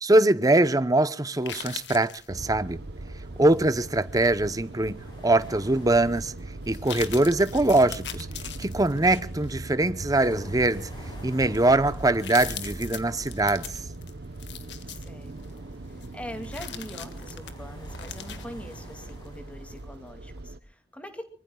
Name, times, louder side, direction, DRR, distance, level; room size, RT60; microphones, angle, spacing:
voice 1, 0.0-2.8 3.4-5.0 5.2-6.3 6.7-8.3 8.6-10.9 11.2-13.8, right 2 dB, 20° right, 0.8 m, -22 dB
sound 1, 1.3-2.3 3.6-4.5 5.0-5.1 6.1-6.2 6.6-9.5 10.0-10.2 10.9-11.0 11.3-15.6 16.0-19.3 19.7-19.8, left 9 dB, 90° left, 1.7 m, -41 dB
sound 2, 2.3-20.6, right 2 dB, 65° right, 0.8 m, -40 dB
sound 3, 2.4-19.8, left 1 dB, 25° left, 7.2 m, -51 dB
voice 2, 14.9-15.6 16.1-21.2, equal, 10° left, 2.4 m, -42 dB
24.5 x 24.5 x 2.3 m
head